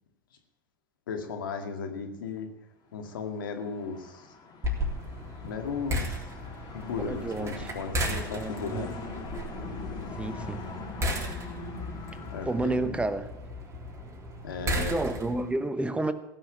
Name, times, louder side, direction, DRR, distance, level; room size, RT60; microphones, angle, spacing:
voice 1, 1.1-2.5 2.9-4.3 5.4-6.2 6.7-8.9 12.3-13.0 14.4-15.0, left 5 dB, 85° left, 4 dB, 2.1 m, -36 dB
sound 1, 3.1-12.8, left 3 dB, 40° left, 3.8 m, -43 dB
sound 2, 4.6-15.5, equal, 25° right, 3.6 m, -35 dB
voice 2, 7.0-7.7 8.3-8.9 10.2-10.7 12.5-13.3 14.7-16.1, right 2 dB, 10° right, 11 dB, 1.0 m, -30 dB
16.5 x 6.5 x 8.7 m, 0.92 s
hypercardioid pair, 90°, 11 cm